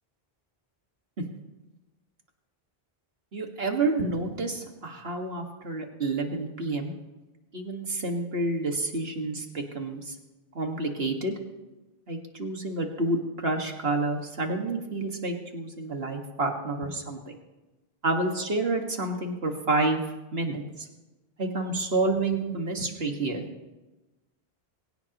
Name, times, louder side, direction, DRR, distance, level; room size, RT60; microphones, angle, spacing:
voice 1, 3.3-6.9 7.5-10.2 10.6-11.3 12.1-17.4 18.0-20.0 20.3-20.9 21.4-23.4, right 2 dB, 75° right, 3 dB, 2.1 m, -29 dB
22.5 x 17.5 x 3.0 m, 1.1 s
omnidirectional pair, 1.0 m